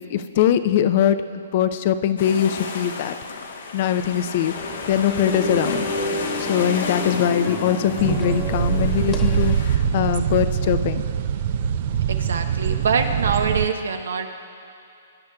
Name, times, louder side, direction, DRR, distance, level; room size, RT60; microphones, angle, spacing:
voice 1, 0.1-3.1 3.7-4.5 4.9-5.9 6.4-11.0, left 9 dB, 50° left, 11 dB, 0.6 m, -22 dB
sound 1, 2.2-9.8, left 4 dB, 70° left, 1.1 m, -33 dB
sound 2, 4.5-9.5, left 1 dB, 15° left, 1.3 m, -30 dB
voice 2, 6.6-7.0 12.1-14.3, right 5 dB, 75° right, 6 dB, 1.0 m, -25 dB
sound 3, 8.0-13.7, right 8 dB, 50° right, 0.5 m, -23 dB
22.0 x 10.5 x 2.3 m, 2.5 s
hypercardioid pair, 130°, 0 cm